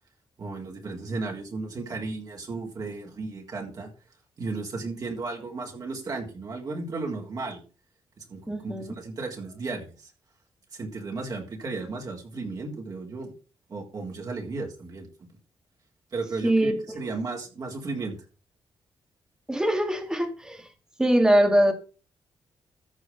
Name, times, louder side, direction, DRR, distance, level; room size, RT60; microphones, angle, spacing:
voice 1, 0.4-3.9 4.4-7.6 8.2-10.1 10.7-13.3 13.7-15.3 16.1-18.2, right 3 dB, 40° right, -1 dB, 3.6 m, -34 dB
voice 2, 8.5-8.9 16.4-16.8 19.5-20.6 21.0-21.7, right 1 dB, 5° right, 5 dB, 2.0 m, -22 dB
14.0 x 5.0 x 5.9 m, 0.36 s
wide cardioid pair, 150°, 9 cm